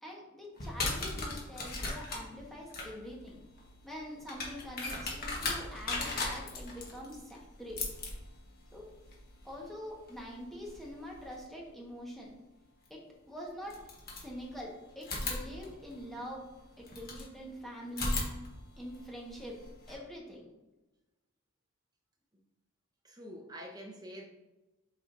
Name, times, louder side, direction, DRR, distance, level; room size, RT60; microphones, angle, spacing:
voice 1, 0.0-3.4 3.8-7.8 8.7-8.9 9.4-12.3 12.9-13.0 13.3-13.8 14.2-16.4 16.8-18.3 18.8-19.6 19.9-20.5, equal, ahead, -4 dB, 1.3 m, -44 dB
sound 1, 0.6-11.4 12.9-13.0 13.7-14.6 15.0-17.3 17.9-19.9, left 2 dB, 45° left, 1.4 m, -39 dB
voice 2, 23.0-24.3, equal, 20° right, -1 dB, 1.0 m, -46 dB
8.4 x 4.9 x 2.6 m, 1.1 s
head